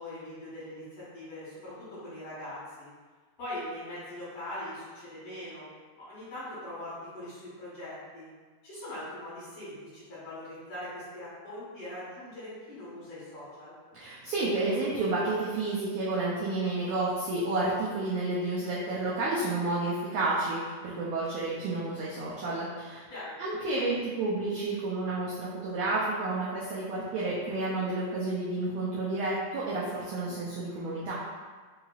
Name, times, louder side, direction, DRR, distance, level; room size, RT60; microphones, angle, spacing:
voice 1, 0.0-2.9 3.4-5.6 6.0-8.3 8.6-13.7 23.1-23.3, left 1 dB, 55° left, -10 dB, 2.0 m, -41 dB
voice 2, 13.9-23.0 23.4-31.2, right 2 dB, 85° right, -7 dB, 1.5 m, -30 dB
4.9 x 3.1 x 2.3 m, 1.5 s
omnidirectional pair, 3.8 m